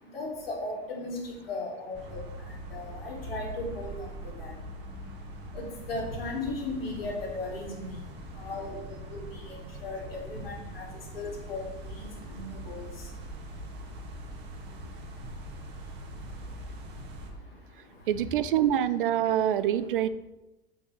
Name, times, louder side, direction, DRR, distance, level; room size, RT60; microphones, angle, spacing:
voice 1, 0.0-18.1 19.2-19.4, left 2 dB, 75° left, -3 dB, 3.5 m, -39 dB
sound 1, 1.9-17.3, right 1 dB, 35° right, 1.9 m, -42 dB
voice 2, 18.1-20.1, right 10 dB, 60° right, 14 dB, 0.6 m, -25 dB
7.7 x 6.9 x 6.7 m, 0.95 s
figure-of-eight pair, 80°, 30 cm